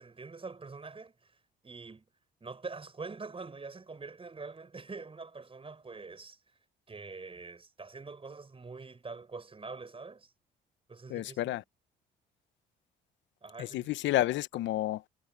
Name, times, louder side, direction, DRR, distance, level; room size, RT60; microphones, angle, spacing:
voice 1, 0.0-1.4 1.6-2.1 2.4-6.4 6.9-10.3 10.9-11.6 13.4-13.9, right 4 dB, 30° right, 5.8 m, -45 dB
voice 2, 11.1-11.6 13.6-15.1, left 15 dB, 70° left, 1.0 m, -30 dB
supercardioid pair, 65°, 20 cm